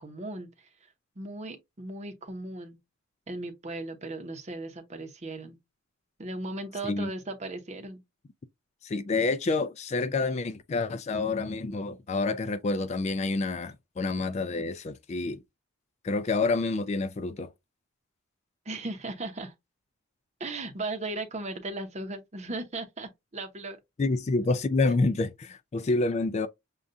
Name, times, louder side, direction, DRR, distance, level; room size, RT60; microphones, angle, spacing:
voice 1, 0.0-2.8 3.3-5.6 6.2-8.0 18.6-19.5 20.4-23.8 24.3-24.5, right 2 dB, 35° right, 0.8 m, -37 dB
voice 2, 8.8-15.4 16.0-17.5 24.0-26.5, left 3 dB, 30° left, 0.3 m, -28 dB
6.6 x 2.4 x 2.5 m
head